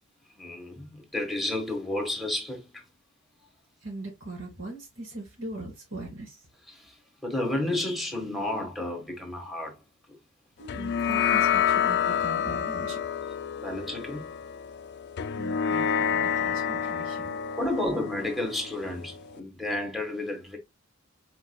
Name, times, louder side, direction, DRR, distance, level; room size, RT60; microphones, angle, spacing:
voice 1, 0.4-2.6 6.7-6.9 7.2-9.8 13.6-14.3 17.6-20.6, left 1 dB, ahead, 1.4 m, -31 dB
voice 2, 3.8-6.4 10.6-13.0 15.3-17.4, right 2 dB, 70° right, 3.2 m, -40 dB
sound 1, 10.7-19.4, left 8 dB, 55° left, 0.4 m, -28 dB
4.7 x 4.3 x 2.2 m
head